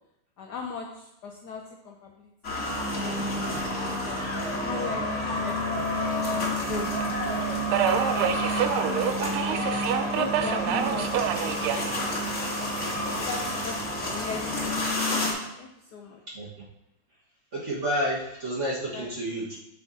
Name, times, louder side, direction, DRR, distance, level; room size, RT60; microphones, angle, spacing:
voice 1, 0.4-2.6 2.9-4.2 4.5-5.6 6.3-9.7 10.1-12.3 12.6-15.0 15.6-16.2 18.9-19.1, left 5 dB, 70° left, 1 dB, 1.0 m, -39 dB
sound 1, 2.4-15.3, left 1 dB, 35° left, 1.6 m, -29 dB
Subway metro underground, 2.9-14.9, right 8 dB, 85° right, 1.4 m, -31 dB
voice 2, 17.5-19.6, equal, 35° right, -5 dB, 1.8 m, -30 dB
7.6 x 6.9 x 2.8 m, 0.86 s
omnidirectional pair, 2.3 m